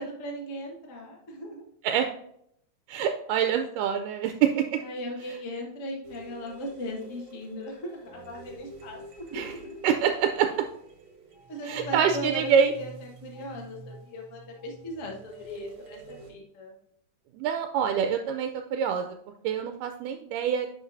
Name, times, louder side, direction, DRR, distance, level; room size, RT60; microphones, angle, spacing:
voice 1, 0.0-1.6 4.8-9.8 11.5-12.5 12.7-16.8, equal, 80° left, 0 dB, 0.7 m, -38 dB
voice 2, 2.9-4.8 9.3-9.5 9.8-10.5 11.7-12.7 17.4-19.2 19.4-20.7, right 8 dB, 85° right, 6 dB, 2.1 m, -25 dB
sound 1, 6.0-16.3, right 3 dB, 45° right, 1.7 m, -47 dB
10.5 x 5.0 x 2.6 m, 0.70 s
omnidirectional pair, 3.7 m